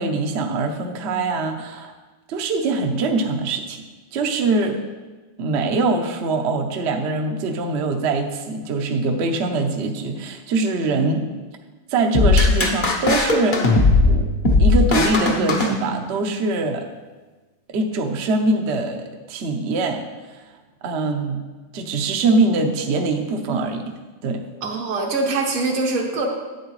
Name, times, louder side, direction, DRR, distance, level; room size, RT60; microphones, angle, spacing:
voice 1, 0.0-1.9 2.3-3.8 4.1-4.8 5.4-11.2 11.9-13.7 14.0-14.3 14.6-16.9 17.7-20.0 20.3-20.4 20.8-21.4 21.7-23.9 24.2-24.4, right 3 dB, 65° right, 3 dB, 0.6 m, -23 dB
sound 1, 12.1-16.3, left 2 dB, 50° left, 0.6 m, -18 dB
voice 2, 24.6-26.3, right 3 dB, 85° right, 0 dB, 2.2 m, -23 dB
11.0 x 8.5 x 3.2 m, 1.3 s
omnidirectional pair, 2.3 m